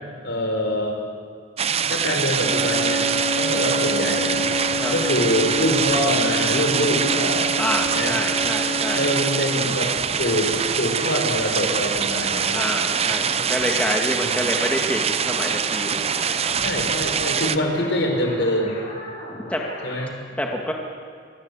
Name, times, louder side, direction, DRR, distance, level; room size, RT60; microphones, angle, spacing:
voice 1, 0.2-1.0 1.9-4.5 4.9-7.5 7.9-8.2 8.9-12.7 14.2-14.5 16.6-18.8 19.8-20.1, left 1 dB, 70° left, 3 dB, 5.2 m, -25 dB
sound 1, 1.6-17.6, right 7 dB, 30° right, 0.7 m, -24 dB
sound 2, 2.3-20.1, left 1 dB, 35° left, 6.4 m, -37 dB
sound 3, 2.3-9.5, equal, 50° right, 6.6 m, -28 dB
voice 2, 7.6-9.1 12.5-16.5 19.5-19.6 20.4-20.7, left 1 dB, 5° left, 0 dB, 2.0 m, -27 dB
25.5 x 20.5 x 8.4 m, 2.1 s
head